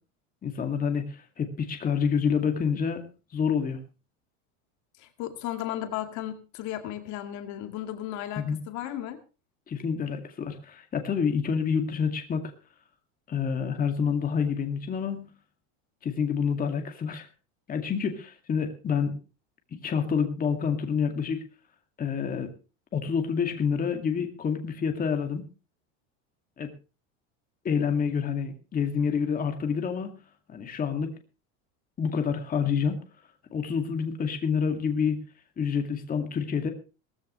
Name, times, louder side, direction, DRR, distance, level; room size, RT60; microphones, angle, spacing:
voice 1, 0.4-3.0 3.3-3.8 8.4-8.6 9.7-12.5 13.3-15.3 16.0-17.3 17.7-19.2 19.8-21.4 22.0-22.5 22.9-25.5 26.6-26.7 27.6-30.2 30.5-31.1 32.0-33.0 33.5-35.2 35.6-36.7, left 6 dB, 25° left, 5 dB, 2.2 m, -28 dB
voice 2, 5.0-9.2, left 12 dB, 50° left, 7 dB, 2.2 m, -35 dB
18.5 x 14.5 x 3.2 m, 0.33 s
supercardioid pair, 135°, 37 cm